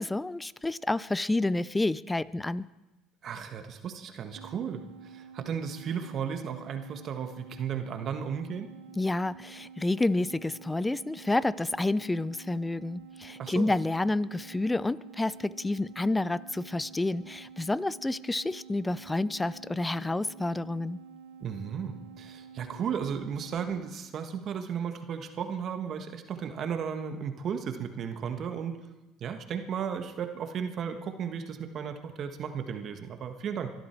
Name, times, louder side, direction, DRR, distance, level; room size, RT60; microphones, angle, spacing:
voice 1, 0.0-2.7 9.0-21.0, left 2 dB, 15° left, 19 dB, 0.6 m, -29 dB
voice 2, 3.2-8.7 13.4-13.7 21.4-28.8 29.2-33.7, right 7 dB, 50° right, 6 dB, 1.6 m, -35 dB
sound 1, 4.4-23.9, right 6 dB, 85° right, 0.7 m, -49 dB
24.0 x 12.5 x 4.6 m, 1.1 s
supercardioid pair, 80°, 0 cm